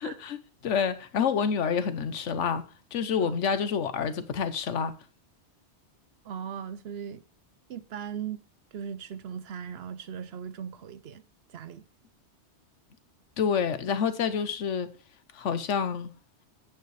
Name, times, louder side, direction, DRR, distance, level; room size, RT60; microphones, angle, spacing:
voice 1, 0.0-2.6 2.9-4.9 13.4-14.9 15.3-16.1, left 6 dB, 90° left, 1.2 m, -28 dB
voice 2, 6.2-7.2 7.7-8.4 8.7-11.2 11.5-11.8, right 8 dB, 65° right, 0.8 m, -38 dB
9.3 x 9.1 x 3.2 m
omnidirectional pair, 1.2 m